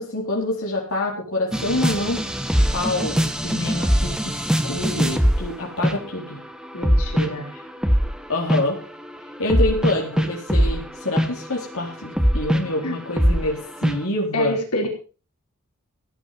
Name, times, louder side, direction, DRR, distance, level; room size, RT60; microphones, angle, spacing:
voice 1, 0.0-2.2 2.7-6.4 8.3-8.8 9.4-13.6 13.8-14.6, left 2 dB, 65° left, -2 dB, 4.2 m, -26 dB
sound 1, 1.5-5.5 5.8-6.2 6.6-8.2 8.5-8.7 9.5-13.5 13.8-13.9, equal, 5° right, 1.3 m, -21 dB
voice 2, 6.7-7.5 12.8-13.0 14.3-14.9, left 1 dB, 85° left, 1 dB, 4.7 m, -26 dB
15.5 x 8.9 x 6.0 m, 0.37 s
head